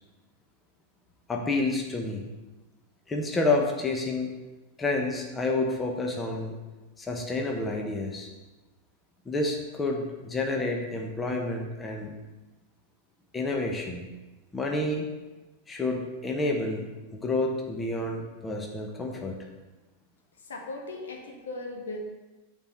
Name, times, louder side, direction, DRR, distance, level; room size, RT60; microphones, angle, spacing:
voice 1, 1.3-2.3 3.1-4.3 4.8-6.5 7.0-8.3 9.2-12.1 13.3-14.0 14.5-15.1 15.7-16.9 17.1-19.4, left 2 dB, 15° left, 1 dB, 1.1 m, -29 dB
voice 2, 20.5-22.0, left 2 dB, 65° left, 1 dB, 1.3 m, -38 dB
8.8 x 4.6 x 5.5 m, 1.1 s
figure-of-eight pair, 90°, 0 cm